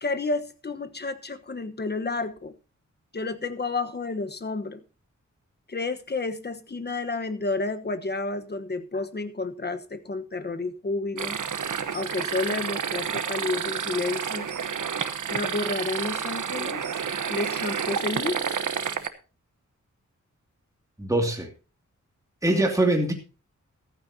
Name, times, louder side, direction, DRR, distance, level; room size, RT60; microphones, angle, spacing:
voice 1, 0.0-2.5 3.1-4.8 5.7-11.4 11.9-14.5 15.3-16.8 17.3-18.4, left 3 dB, 35° left, 1.2 m, -30 dB
sound 1, 11.2-19.1, right 7 dB, 80° right, 1.2 m, -30 dB
voice 2, 21.0-21.5 22.4-23.1, right 1 dB, 10° right, 2.5 m, -22 dB
15.0 x 13.5 x 2.8 m
wide cardioid pair, 135°, 30 cm